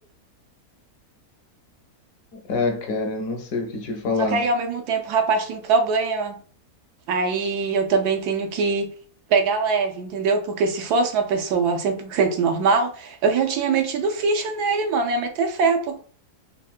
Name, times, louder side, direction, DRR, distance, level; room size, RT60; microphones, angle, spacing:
voice 1, 2.3-4.4, left 3 dB, 70° left, 1.0 m, -26 dB
voice 2, 4.2-6.4 7.1-8.9 9.3-16.0, right 4 dB, 85° right, 1.1 m, -22 dB
3.5 x 2.1 x 2.3 m
omnidirectional pair, 1.6 m